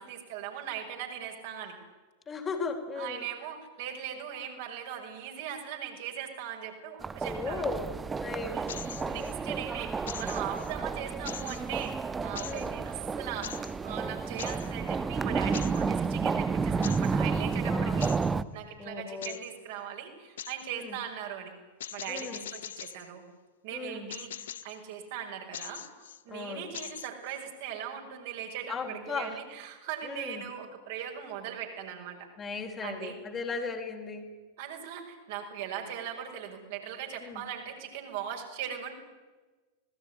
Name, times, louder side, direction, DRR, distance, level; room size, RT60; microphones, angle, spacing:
voice 1, 0.0-1.8 3.0-7.6 8.4-18.1 18.5-21.5 21.9-23.2 23.6-32.3 32.8-33.2 34.6-38.9, right 9 dB, 50° right, 2 dB, 6.0 m, -39 dB
voice 2, 2.3-3.3 7.3-8.6 9.0-9.3 12.4-12.8 17.7-18.0 18.8-19.4 20.7-21.0 22.1-22.4 23.7-24.1 26.3-26.7 28.7-29.4 30.0-30.4 32.4-34.3 37.2-37.4, left 4 dB, 20° left, 4 dB, 3.8 m, -37 dB
sound 1, 7.0-18.4, right 5 dB, 15° right, 0.9 m, -31 dB
sound 2, 8.7-9.3 10.1-10.7 11.3-11.9 12.4-12.7 13.4-13.8 14.4-14.7 15.5-15.9 16.8-17.1 18.0-18.3 19.2-19.5 20.4-20.7 21.8-23.1 24.1-24.8 25.5-26.2 26.7-27.4, left 10 dB, 65° left, 0.9 m, -42 dB
25.5 x 19.5 x 9.9 m, 1.3 s
figure-of-eight pair, 90°, 0 cm